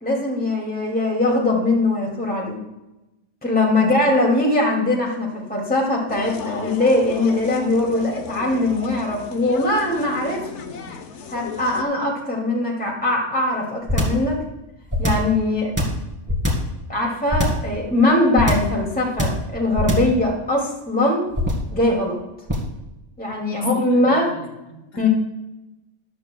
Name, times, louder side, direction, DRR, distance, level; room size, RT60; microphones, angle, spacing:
voice 1, 0.0-2.6 3.4-10.5 11.3-14.4 15.0-15.7 16.9-21.2 21.7-22.2 23.2-24.3 25.0-25.1, left 2 dB, 5° left, -3 dB, 2.2 m, -21 dB
voice 2, 3.8-4.1 23.5-25.1, left 1 dB, 55° left, 2 dB, 2.0 m, -38 dB
sound 1, 6.1-11.8, left 6 dB, 70° left, 1.1 m, -35 dB
sound 2, 13.9-14.3 14.9-15.3 15.8-16.7 17.3-17.7 18.4-18.8 19.2-19.5 19.8-20.2 21.3-21.7 22.5-22.8, left 1 dB, 15° right, 2.5 m, -21 dB
13.5 x 11.0 x 2.2 m, 0.97 s
omnidirectional pair, 1.3 m